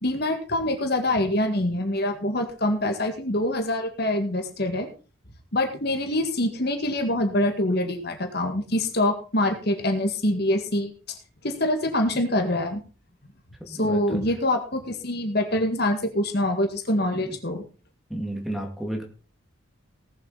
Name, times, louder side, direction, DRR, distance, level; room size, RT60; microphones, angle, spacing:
voice 1, 0.0-4.9 5.5-11.2 11.4-12.8 13.7-17.6, left 1 dB, 50° left, 5 dB, 1.9 m, -25 dB
voice 2, 13.7-14.2 17.1-17.4 18.1-19.0, right 1 dB, ahead, 2 dB, 2.2 m, -32 dB
18.5 x 7.7 x 4.1 m, 0.36 s
head